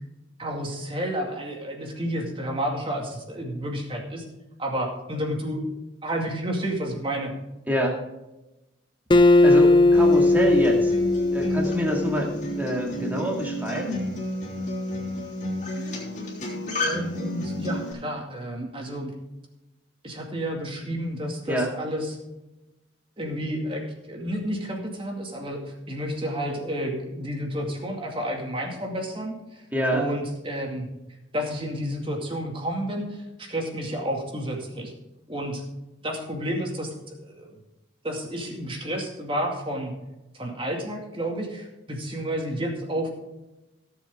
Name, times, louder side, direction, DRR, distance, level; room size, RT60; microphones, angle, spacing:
voice 1, 0.4-4.2 4.6-5.6 6.0-7.3 16.7-19.1 20.0-22.2 23.2-29.6 29.9-30.9 31.3-34.9 35.3-35.6 36.0-37.5 38.0-39.9 40.3-43.1, equal, 25° right, 1 dB, 2.2 m, -31 dB
voice 2, 7.7-8.0 9.4-10.9 11.3-14.0 21.5-21.7 29.7-30.1, equal, 10° right, 0 dB, 2.1 m, -26 dB
Acoustic guitar, 9.1-12.5, left 2 dB, 25° left, 0.4 m, -18 dB
Acoustic guitar 2, 9.9-17.9, left 1 dB, 40° left, 3.4 m, -31 dB
17.5 x 7.5 x 3.7 m, 1.0 s
head